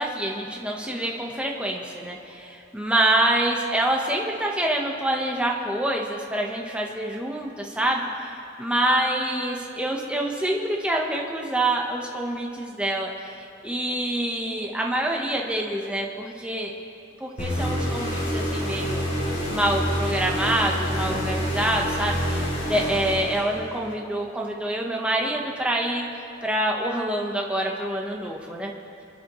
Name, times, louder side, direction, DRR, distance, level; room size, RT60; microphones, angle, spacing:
voice 1, 0.0-8.1 8.6-16.7 17.2-19.1 19.5-26.0 26.4-28.7, right 1 dB, 5° right, -1 dB, 1.0 m, -26 dB
sound 1, 17.4-23.8, equal, 40° left, 4.4 m, -27 dB
28.0 x 11.5 x 3.1 m, 2.6 s
head